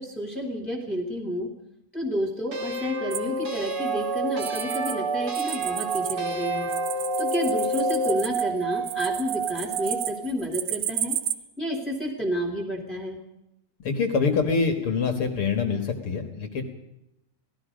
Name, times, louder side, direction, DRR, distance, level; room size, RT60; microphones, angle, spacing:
voice 1, 0.0-1.5 1.9-6.7 7.2-11.2 11.6-13.2, equal, ahead, 1 dB, 1.8 m, -30 dB
sound 1, 2.5-8.2, left 2 dB, 40° right, 1.5 m, -30 dB
sound 2, 3.1-5.0 5.2-11.3, right 12 dB, 85° right, 1.8 m, -33 dB
Singing / Glass, 3.7-10.3, right 8 dB, 55° right, 3.5 m, -31 dB
voice 2, 13.8-16.6, left 5 dB, 60° left, 6 dB, 1.4 m, -25 dB
28.0 x 18.0 x 5.2 m, 0.84 s
omnidirectional pair, 4.9 m